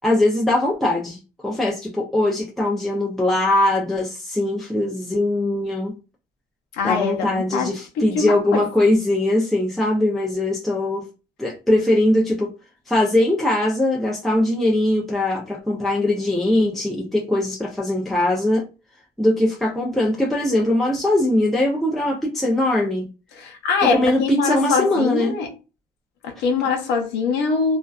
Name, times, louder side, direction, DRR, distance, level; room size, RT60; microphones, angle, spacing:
voice 1, 0.0-5.9 6.8-11.0 11.4-12.5 12.9-18.6 19.2-23.1 23.9-25.3, left 1 dB, ahead, 0.5 m, -21 dB
voice 2, 6.7-7.7 8.0-8.6 23.3-25.5 26.2-27.8, left 5 dB, 90° left, 0.7 m, -23 dB
2.4 x 2.2 x 2.3 m
cardioid pair, 110°, 17 cm